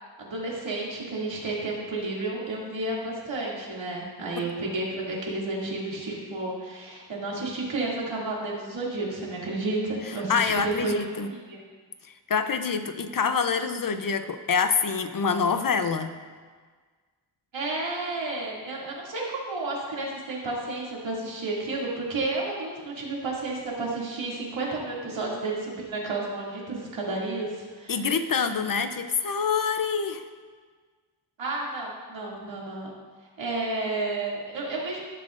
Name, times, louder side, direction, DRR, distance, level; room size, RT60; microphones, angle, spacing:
voice 1, 0.2-11.6 17.5-28.0 31.4-32.9 33.4-35.0, right 2 dB, 80° right, -4 dB, 2.5 m, -31 dB
voice 2, 10.1-11.3 12.0-16.1 27.9-30.2, left 5 dB, 45° left, 9 dB, 0.6 m, -26 dB
17.0 x 7.6 x 2.5 m, 1.5 s
wide cardioid pair, 110°, 45 cm